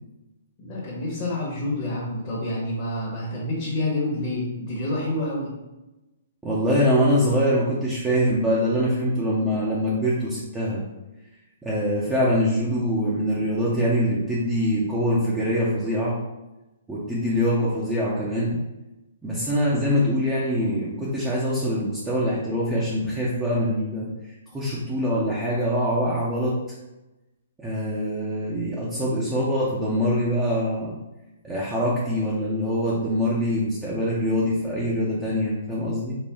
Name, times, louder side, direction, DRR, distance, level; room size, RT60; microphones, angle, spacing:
voice 1, 0.6-5.5, left 1 dB, 30° left, -7 dB, 1.3 m, -28 dB
voice 2, 6.4-10.8 11.6-16.2 16.9-18.6 19.2-24.1 24.5-26.5 27.6-31.0 31.4-36.2, equal, 10° right, -7 dB, 0.8 m, -24 dB
4.3 x 2.1 x 3.5 m, 1.0 s
hypercardioid pair, 135°, 0 cm